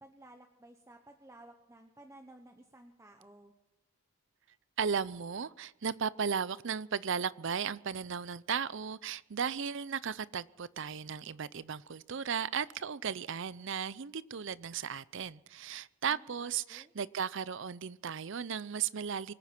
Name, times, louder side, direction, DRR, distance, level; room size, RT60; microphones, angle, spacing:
voice 1, 0.0-3.5 16.1-16.9, right 1 dB, 15° right, 4 dB, 0.9 m, -55 dB
voice 2, 4.8-19.3, right 7 dB, 60° right, 19 dB, 0.5 m, -35 dB
24.5 x 9.3 x 6.0 m, 1.0 s
head